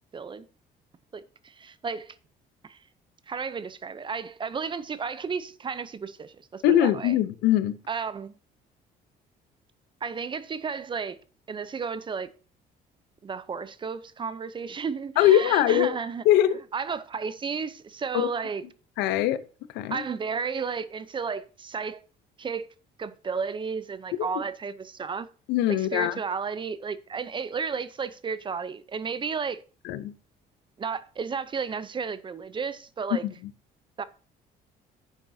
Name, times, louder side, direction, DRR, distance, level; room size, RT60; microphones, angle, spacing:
voice 1, 0.1-0.5 1.1-2.2 2.6-2.8 3.3-7.2 7.9-8.3 10.0-11.2 11.5-12.3 13.2-16.2 16.7-18.6 19.9-22.0 22.4-22.7 23.0-25.3 25.7-29.6 30.8-33.2 34.0-34.1, right 5 dB, 30° right, 0.6 m, -33 dB
voice 2, 6.6-7.8 15.2-16.0 16.2-16.6 18.1-18.3 19.0-19.4 19.7-20.0 24.2-24.3 25.5-26.2 29.8-30.1, left 12 dB, 90° left, 0.7 m, -22 dB
10.0 x 8.2 x 2.7 m
cardioid pair, 110°, 17 cm